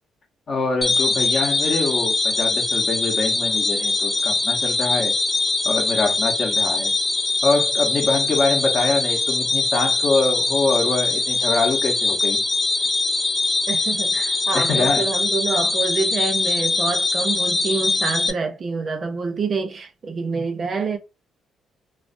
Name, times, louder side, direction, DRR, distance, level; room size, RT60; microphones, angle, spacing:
voice 1, 0.5-5.2 5.6-6.9 7.4-12.4 14.5-15.1, left 3 dB, 45° left, 0.8 m, -24 dB
sound 1, 0.8-18.3, left 3 dB, 20° left, 0.4 m, -22 dB
voice 2, 13.7-21.0, right 4 dB, 45° right, 0.6 m, -27 dB
2.3 x 2.2 x 2.5 m
cardioid pair, 90°, 0 cm